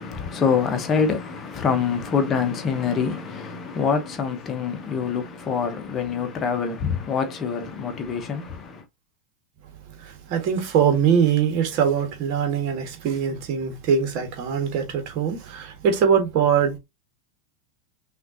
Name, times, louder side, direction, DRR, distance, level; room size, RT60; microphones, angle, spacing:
voice 1, 0.0-8.8, left 6 dB, 25° left, 1.0 m, -25 dB
voice 2, 10.0-16.8, right 7 dB, 40° right, 1.4 m, -22 dB
5.8 x 2.6 x 2.6 m
figure-of-eight pair, 90°, 0 cm